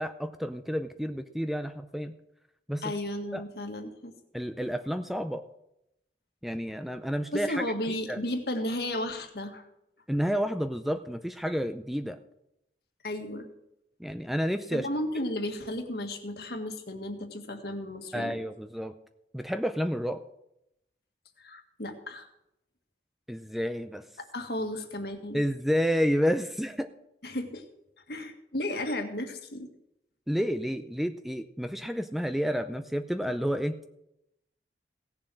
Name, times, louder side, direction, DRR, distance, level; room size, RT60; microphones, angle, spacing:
voice 1, 0.0-2.2 2.7-2.9 3.3-3.4 4.3-5.4 6.4-8.2 10.1-12.2 14.0-14.9 18.1-18.9 19.3-20.2 23.3-24.1 25.3-26.9 30.3-33.9, equal, ahead, 8 dB, 0.5 m, -30 dB
voice 2, 2.8-4.1 7.3-9.7 13.0-13.5 14.7-18.3 21.4-22.3 24.2-25.4 27.2-27.6 28.1-29.7, left 1 dB, 65° left, 5 dB, 1.8 m, -34 dB
17.5 x 7.2 x 6.3 m, 0.83 s
head